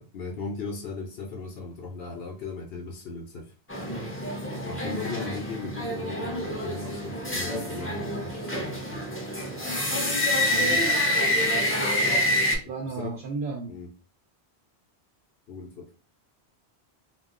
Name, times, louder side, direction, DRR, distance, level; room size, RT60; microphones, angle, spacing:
voice 1, 0.0-3.5 4.6-9.2 12.2-13.2 13.7-13.9 15.5-15.9, left 4 dB, 70° left, 0 dB, 0.8 m, -37 dB
sound 1, 3.7-12.6, left 1 dB, 15° left, 0.6 m, -27 dB
voice 2, 10.5-10.9 12.6-13.7, right 4 dB, 60° right, 2 dB, 0.7 m, -34 dB
2.3 x 2.1 x 3.6 m, 0.35 s
omnidirectional pair, 1.1 m